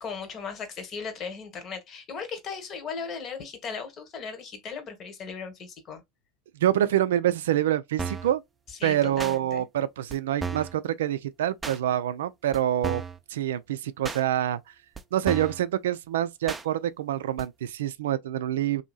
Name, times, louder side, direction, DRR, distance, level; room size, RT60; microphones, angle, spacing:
voice 1, 0.0-6.0 8.8-9.7, left 5 dB, 45° left, 1.2 m, -37 dB
voice 2, 6.5-8.4 8.8-13.0 13.3-14.7 15.1-18.8, right 11 dB, 80° right, 0.3 m, -26 dB
sound 1, 8.0-8.3 9.2-9.4 10.1-10.2 10.4-10.8 11.6-11.8 12.5-12.6 12.8-13.2 14.0-14.2 14.9-15.0 15.3-15.6 16.5-16.6 17.4-17.5, right 5 dB, 20° right, 0.5 m, -33 dB
2.7 x 2.7 x 2.3 m
hypercardioid pair, 85°, 0 cm